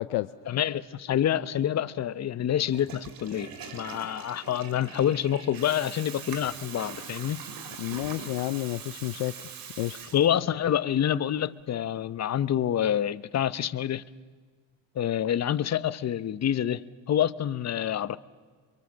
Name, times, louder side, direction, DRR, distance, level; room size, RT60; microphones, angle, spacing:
voice 1, 0.5-7.4 10.1-14.0 14.9-16.8 17.1-18.2, left 10 dB, 45° left, 0.9 m, -27 dB
Water tap faucet / Toilet flush, 2.6-10.6, right 6 dB, 65° right, 2.5 m, -42 dB
voice 2, 7.8-9.3 9.8-10.0, left 18 dB, 80° left, 0.7 m, -30 dB
25.5 x 23.0 x 7.4 m
cardioid pair, 90°, 38 cm